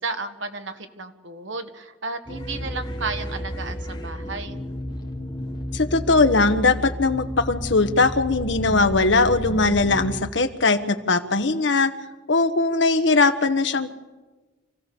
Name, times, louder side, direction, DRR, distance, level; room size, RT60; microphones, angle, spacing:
voice 1, 0.0-4.6, right 3 dB, 80° right, 7 dB, 1.7 m, -33 dB
sound 1, 2.3-10.2, equal, 25° left, 2.4 m, -32 dB
voice 2, 5.7-11.9 12.3-13.9, left 3 dB, 70° left, 9 dB, 1.3 m, -20 dB
26.5 x 15.5 x 7.0 m, 1.3 s
head